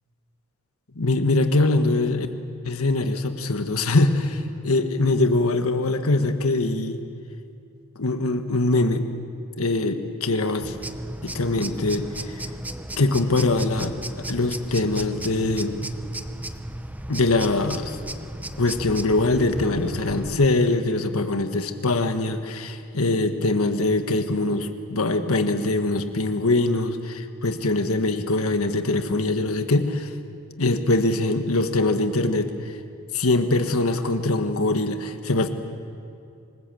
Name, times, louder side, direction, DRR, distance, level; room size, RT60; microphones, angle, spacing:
voice 1, 0.9-2.3 2.6-7.0 7.9-9.1 9.6-10.7 11.2-12.3 13.0-15.9 17.1-18.0 18.6-30.1 30.6-32.5 33.1-35.5, left 2 dB, 85° left, 7 dB, 1.5 m, -23 dB
sound 1, 10.6-20.5, right 1 dB, 10° right, 0.8 m, -35 dB
26.5 x 20.0 x 7.8 m, 2.5 s
head